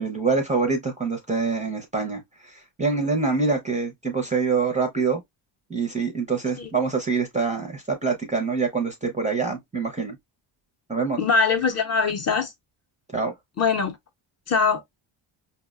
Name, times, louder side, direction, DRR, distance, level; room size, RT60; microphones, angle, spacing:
voice 1, 0.0-5.2 5.7-10.2 10.9-11.2 13.1-13.3, right 4 dB, 15° right, 0.4 m, -25 dB
voice 2, 11.2-12.5 13.6-14.0 14.5-14.8, left 5 dB, 35° left, 0.5 m, -22 dB
5.5 x 2.0 x 2.2 m
cardioid pair, 165°, 47 cm